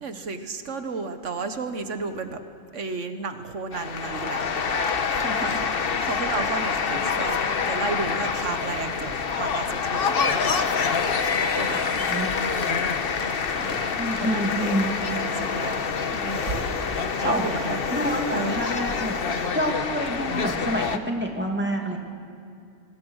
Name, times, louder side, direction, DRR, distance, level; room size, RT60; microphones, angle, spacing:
voice 1, 0.0-2.4 2.7-4.6 5.1-10.6 11.6-11.8 12.4-12.9 13.6-14.8 15.1-15.8 16.1-16.6 16.9-17.8 18.3-18.6, right 4 dB, 75° right, 8 dB, 1.6 m, -33 dB
sound 1, 3.7-21.0, left 5 dB, 50° left, 1.1 m, -26 dB
voice 2, 11.7-12.3 14.0-15.0 16.9-17.5 17.9-22.0, equal, 10° right, 2 dB, 2.3 m, -28 dB
Engine, 14.2-19.5, left 3 dB, 80° left, 2.2 m, -37 dB
26.0 x 19.5 x 6.4 m, 2.4 s
omnidirectional pair, 1.3 m